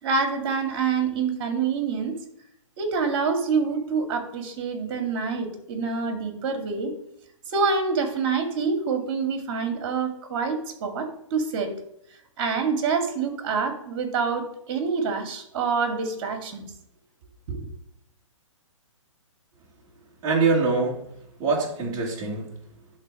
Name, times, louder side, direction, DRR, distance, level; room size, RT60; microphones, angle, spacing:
voice 1, 0.0-2.2 2.8-6.9 7.5-11.7 12.4-16.7 17.5-17.6, right 5 dB, 45° right, 6 dB, 2.4 m, -26 dB
voice 2, 20.2-21.1 21.4-22.6, right 4 dB, 20° right, -3 dB, 2.7 m, -24 dB
11.5 x 4.0 x 6.5 m, 0.72 s
hypercardioid pair, 145°, 17 cm